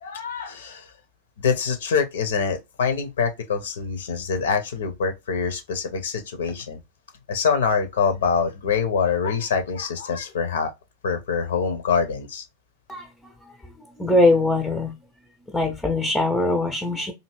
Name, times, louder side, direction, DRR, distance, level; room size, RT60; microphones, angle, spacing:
voice 1, 0.0-0.9 1.4-6.8 7.3-10.7 11.0-12.4, left 6 dB, 60° left, 0.5 m, -25 dB
voice 2, 12.9-14.9 15.5-17.1, left 2 dB, 5° left, 0.4 m, -22 dB
2.7 x 2.6 x 2.9 m
figure-of-eight pair, 90°, 0 cm